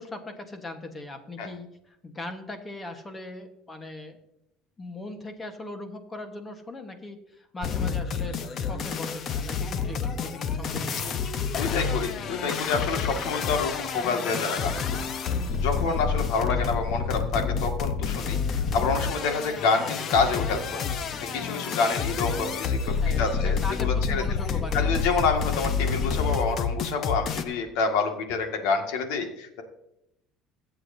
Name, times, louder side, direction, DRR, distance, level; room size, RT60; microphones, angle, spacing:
voice 1, 0.0-4.2 4.8-11.2 22.9-25.0, left 2 dB, 15° left, 6 dB, 1.3 m, -39 dB
sound 1, 7.6-27.4, left 6 dB, 40° left, 0.8 m, -29 dB
voice 2, 11.6-14.8 15.6-20.6 21.3-24.2 24.7-29.6, left 4 dB, 85° left, 4 dB, 2.0 m, -28 dB
22.5 x 8.1 x 2.7 m, 0.84 s
cardioid pair, 150°, 0 cm